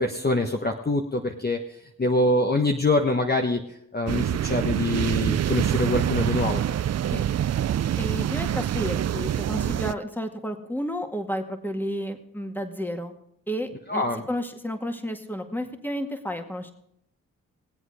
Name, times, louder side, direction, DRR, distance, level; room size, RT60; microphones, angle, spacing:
voice 1, 0.0-1.6 2.0-3.6 3.9-6.6 13.9-14.2, left 2 dB, 30° left, 3 dB, 1.2 m, -24 dB
sound 1, 4.1-9.9, right 10 dB, 50° right, 0.5 m, -26 dB
voice 2, 8.0-13.1 13.5-16.7, equal, 5° left, 5 dB, 2.0 m, -31 dB
20.5 x 8.0 x 5.0 m, 0.76 s
supercardioid pair, 50°, 34 cm